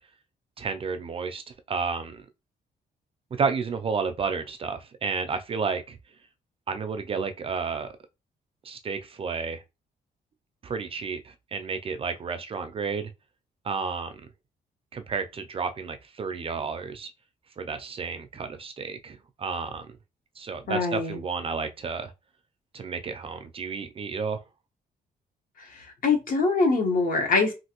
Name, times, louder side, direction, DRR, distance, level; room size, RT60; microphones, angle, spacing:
voice 1, 0.6-2.3 3.4-6.0 6.7-7.9 8.6-9.6 10.6-13.1 13.6-14.2 14.9-17.1 17.6-19.9 20.4-22.1 22.7-24.4, right 5 dB, 35° right, 0.4 m, -31 dB
voice 2, 20.7-21.2 25.6-27.5, left 3 dB, 55° left, 1.1 m, -24 dB
3.1 x 2.5 x 2.9 m
cardioid pair, 150°, 17 cm